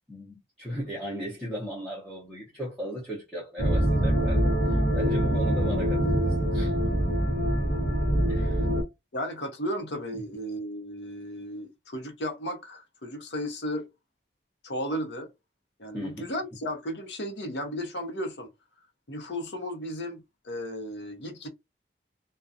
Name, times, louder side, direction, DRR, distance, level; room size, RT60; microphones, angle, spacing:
voice 1, 0.1-6.7 8.3-8.6 15.9-16.3, equal, ahead, 0.7 m, -36 dB
sound 1, 3.6-8.8, equal, 55° left, 0.9 m, -24 dB
voice 2, 9.1-13.9 14.6-15.3 15.8-18.5 19.1-21.5, equal, 85° left, 0.8 m, -34 dB
2.4 x 2.2 x 2.5 m
head